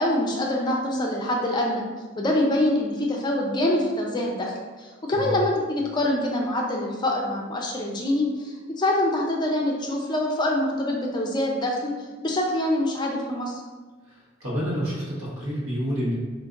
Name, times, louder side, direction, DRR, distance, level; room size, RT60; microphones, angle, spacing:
voice 1, 0.0-1.8 2.2-4.5 5.0-11.9 12.2-13.6, left 1 dB, 20° left, -1 dB, 0.4 m, -25 dB
voice 2, 5.1-5.4 14.1-14.2 14.4-16.1, equal, 80° right, -7 dB, 1.2 m, -28 dB
3.9 x 2.5 x 2.4 m, 1.4 s
head